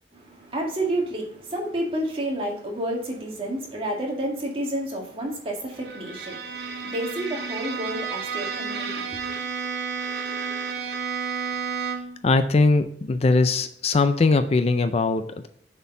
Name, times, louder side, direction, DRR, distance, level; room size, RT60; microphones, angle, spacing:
voice 1, 0.1-9.4, right 1 dB, 30° right, 2.0 m, -30 dB
Bowed string instrument, 5.8-12.2, right 5 dB, 70° right, 0.9 m, -31 dB
voice 2, 12.2-15.5, left 3 dB, 35° left, 0.4 m, -21 dB
6.9 x 4.5 x 5.4 m
head